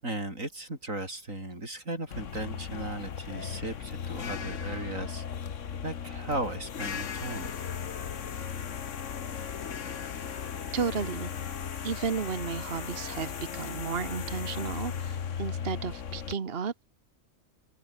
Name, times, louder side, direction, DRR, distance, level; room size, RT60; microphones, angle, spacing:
voice 1, 0.0-5.2 5.8-7.5, right 2 dB, 90° right, 7.3 m, -36 dB
sound 1, 2.1-16.3, left 7 dB, 70° left, 1.6 m, -37 dB
voice 2, 10.7-11.3 11.8-16.9, right 6 dB, 50° right, 1.5 m, -33 dB
open air
omnidirectional pair, 1.3 m